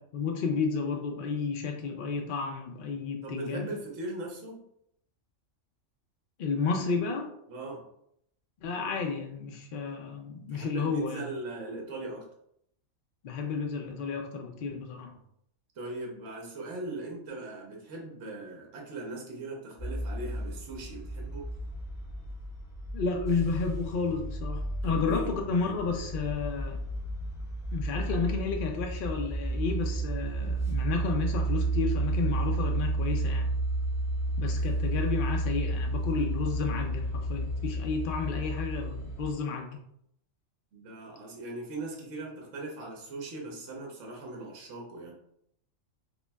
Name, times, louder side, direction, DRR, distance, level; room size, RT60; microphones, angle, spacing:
voice 1, 0.0-3.7 6.4-7.3 8.6-11.3 13.2-15.1 22.9-26.8 27.7-33.5 34.4-39.8, left 5 dB, 65° left, 2 dB, 0.5 m, -32 dB
voice 2, 3.2-4.6 7.5-7.8 10.5-12.3 15.7-21.5 24.8-25.3 40.7-45.1, right 2 dB, 70° right, 0 dB, 1.1 m, -39 dB
sound 1, 19.8-39.3, right 2 dB, 5° right, 0.7 m, -32 dB
5.0 x 2.2 x 2.2 m, 0.73 s
omnidirectional pair, 1.4 m